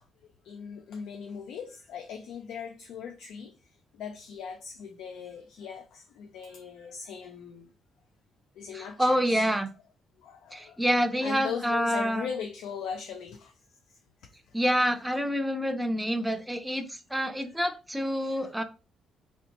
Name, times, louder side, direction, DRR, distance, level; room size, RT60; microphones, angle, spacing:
voice 1, 0.4-3.5 3.9-7.7 8.6-9.6 10.2-10.8 11.2-13.5 18.2-18.6, left 6 dB, 85° left, 0.3 m, -39 dB
voice 2, 8.7-9.7 10.5-12.3 14.5-18.6, equal, 5° right, 0.4 m, -27 dB
2.7 x 2.1 x 2.8 m
cardioid pair, 90°, 0 cm